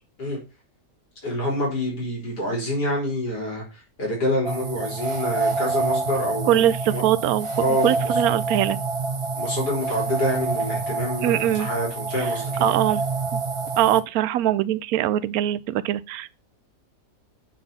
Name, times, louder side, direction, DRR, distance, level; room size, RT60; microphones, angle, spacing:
voice 1, 1.2-7.0 7.6-8.2 9.3-12.6, equal, 90° left, 4.4 m, -27 dB
sound 1, 4.4-14.0, right 3 dB, 30° right, 0.6 m, -27 dB
voice 2, 6.5-7.5 7.8-8.8 11.2-11.7 12.6-13.0 13.8-16.4, right 12 dB, 70° right, 1.0 m, -22 dB
9.1 x 4.0 x 5.4 m
omnidirectional pair, 1.7 m